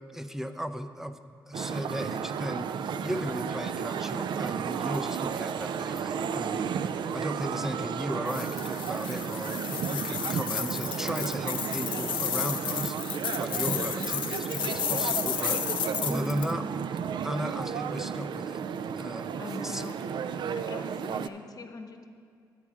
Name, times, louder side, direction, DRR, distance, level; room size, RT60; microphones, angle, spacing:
voice 1, 0.1-1.2 1.5-6.8 7.1-16.7 17.2-18.6 18.9-19.3 19.6-19.8, equal, 5° right, 8 dB, 0.5 m, -36 dB
sound 1, 1.5-21.3, right 7 dB, 65° right, 0.3 m, -33 dB
sound 2, 8.3-16.5, left 9 dB, 75° left, 0.5 m, -33 dB
voice 2, 13.6-14.1 15.9-16.5 19.4-20.0 20.5-22.1, left 3 dB, 50° left, 6 dB, 0.8 m, -41 dB
9.8 x 4.7 x 7.2 m, 2.2 s
cardioid pair, 70°, 8 cm